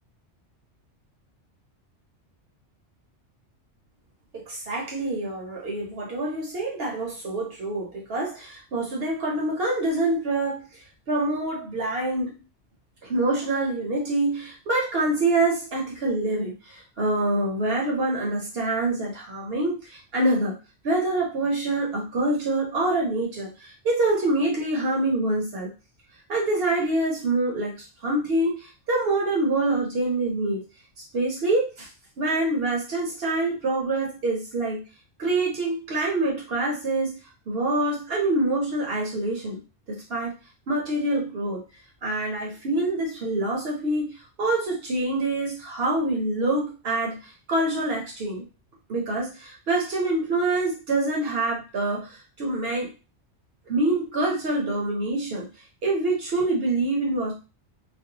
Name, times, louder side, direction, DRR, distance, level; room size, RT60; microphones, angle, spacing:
voice 1, 4.3-10.7 11.1-12.3 13.0-20.5 20.8-25.7 26.3-27.8 28.0-30.6 31.1-31.9 32.2-34.8 35.2-37.2 37.5-39.6 39.9-40.3 40.7-41.6 42.0-48.4 48.9-52.9 53.7-55.5 55.8-57.3, right 2 dB, 60° right, -2 dB, 0.8 m, -26 dB
2.5 x 2.0 x 2.7 m, 0.31 s
omnidirectional pair, 1.2 m